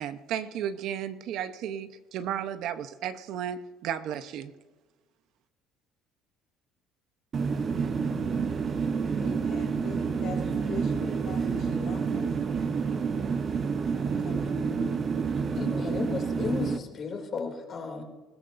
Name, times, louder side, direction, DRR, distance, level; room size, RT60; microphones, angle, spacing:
voice 1, 0.0-4.5, right 9 dB, 65° right, 10 dB, 0.8 m, -34 dB
sound 1, 7.3-16.8, right 5 dB, 35° right, 0.8 m, -29 dB
voice 2, 9.2-12.3 13.9-14.9, left 5 dB, 60° left, 0 dB, 4.4 m, -41 dB
voice 3, 15.5-18.0, left 5 dB, 40° left, 3 dB, 2.8 m, -34 dB
20.5 x 17.0 x 2.6 m, 1.2 s
cardioid pair, 130°, 0 cm